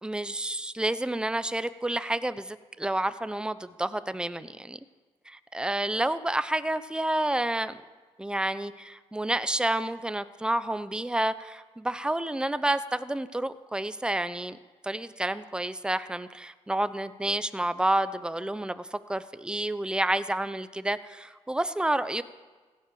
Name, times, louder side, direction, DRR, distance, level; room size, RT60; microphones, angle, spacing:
voice 1, 0.0-4.8 5.3-7.8 8.2-14.6 14.8-22.2, right 1 dB, 5° right, 13 dB, 0.8 m, -29 dB
16.0 x 10.5 x 7.0 m, 1.3 s
cardioid pair, 75°, 12 cm